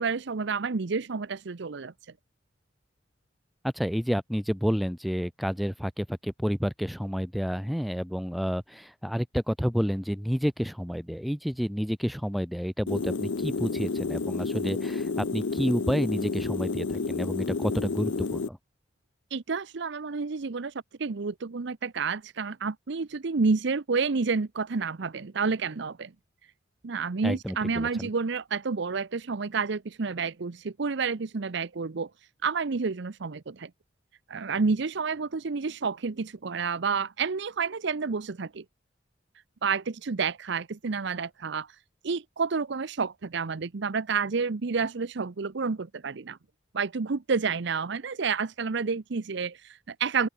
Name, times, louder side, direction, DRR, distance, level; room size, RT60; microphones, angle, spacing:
voice 1, 0.0-1.9 19.3-20.7 21.0-26.1 26.8-32.1 32.4-33.7 34.3-38.6 39.6-41.7 42.0-46.4 46.7-50.3, right 5 dB, 65° right, 0.7 m, -29 dB
voice 2, 3.6-18.6 27.2-28.1, equal, ahead, 1.4 m, -30 dB
sound 1, 12.9-18.5, left 4 dB, 75° left, 0.7 m, -30 dB
open air
head